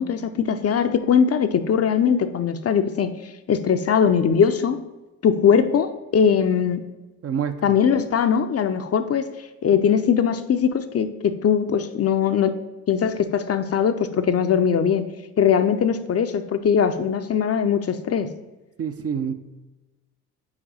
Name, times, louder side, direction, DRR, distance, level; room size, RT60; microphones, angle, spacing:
voice 1, 0.0-3.1 3.5-4.8 5.2-6.8 7.6-9.2 9.6-12.5 12.9-15.0 15.4-18.3, left 7 dB, 35° left, 9 dB, 0.5 m, -20 dB
voice 2, 7.2-7.8 18.8-19.3, right 7 dB, 35° right, 9 dB, 0.5 m, -27 dB
4.9 x 4.6 x 5.5 m, 1.1 s
hypercardioid pair, 55°, 41 cm